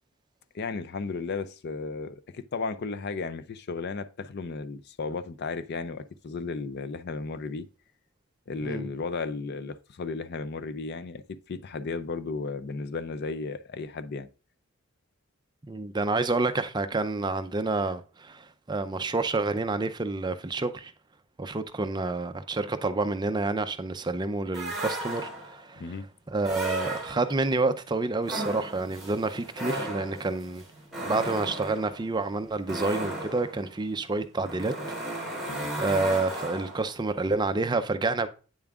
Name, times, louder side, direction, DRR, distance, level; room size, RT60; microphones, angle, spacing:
voice 1, 0.5-7.7 8.5-11.2 11.5-14.3 25.8-26.1 35.5-35.7, left 4 dB, 50° left, 0.5 m, -34 dB
voice 2, 15.7-20.9 21.4-25.8 26.3-30.6 31.0-34.8 35.2-35.3 35.8-38.3, right 3 dB, 20° right, 0.5 m, -28 dB
sound 1, 24.5-25.6 26.4-27.5 28.2-36.9, right 1 dB, ahead, 2.7 m, -35 dB
8.8 x 7.0 x 2.4 m
head